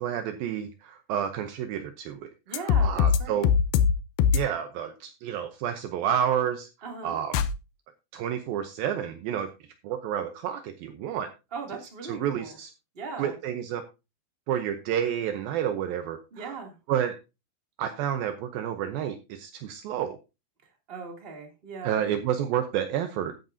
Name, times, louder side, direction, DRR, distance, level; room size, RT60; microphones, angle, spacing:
voice 1, 0.0-3.5 4.3-6.7 7.0-7.4 8.1-9.5 9.8-11.3 12.1-12.7 13.2-13.8 14.5-16.5 16.9-17.2 17.8-20.2 21.8-23.3, right 9 dB, 75° right, 8 dB, 2.6 m, -30 dB
sound 1, 2.5-3.2 3.4-3.9 4.2-4.4 7.3-7.5, left 7 dB, 75° left, 2.5 m, -20 dB
voice 2, 2.5-3.4 6.8-7.2 11.5-12.6 12.9-13.4 16.3-16.8 20.9-22.0, right 4 dB, 15° right, 2 dB, 2.3 m, -39 dB
13.0 x 10.0 x 2.7 m, 0.27 s
omnidirectional pair, 4.4 m